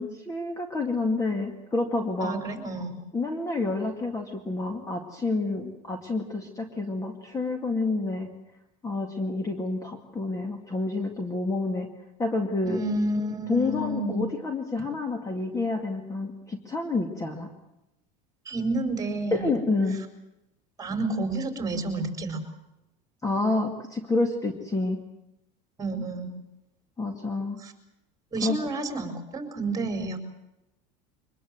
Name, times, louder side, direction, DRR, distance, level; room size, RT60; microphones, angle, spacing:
voice 1, 0.0-2.4 3.1-8.3 8.8-11.9 12.2-12.8 13.5-17.5 19.3-20.0 23.2-25.0 27.0-27.6 28.4-28.7, left 3 dB, 15° left, 5 dB, 2.2 m, -28 dB
voice 2, 2.2-3.0 12.6-14.2 18.4-19.5 20.8-22.4 25.8-26.3 27.6-27.7 28.3-30.2, right 2 dB, 15° right, 6 dB, 4.8 m, -30 dB
23.5 x 20.5 x 7.8 m, 0.90 s
supercardioid pair, 130°, 21 cm